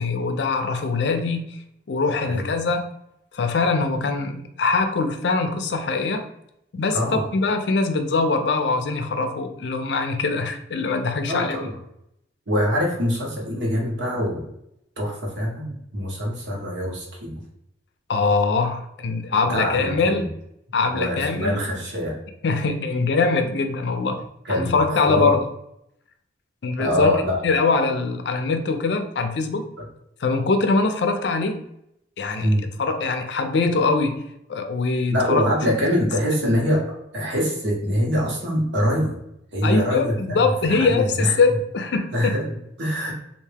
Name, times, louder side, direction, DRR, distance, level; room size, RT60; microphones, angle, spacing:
voice 1, 0.0-1.4 1.9-2.8 3.3-6.3 6.7-7.0 7.3-11.7 18.1-20.3 20.7-21.6 22.4-25.4 26.6-29.6 30.2-31.6 32.2-32.5 32.8-34.2 34.5-35.4 39.6-42.3, left 4 dB, 65° left, 7 dB, 0.4 m, -22 dB
voice 2, 6.9-7.2 11.3-11.7 12.5-14.5 15.0-17.4 19.5-20.3 20.9-22.2 24.4-25.3 26.8-27.4 32.4-32.6 35.1-36.8 37.1-39.2 39.5-41.3 42.1-43.1, equal, 70° right, -2 dB, 1.1 m, -24 dB
3.4 x 2.5 x 3.3 m, 0.79 s
head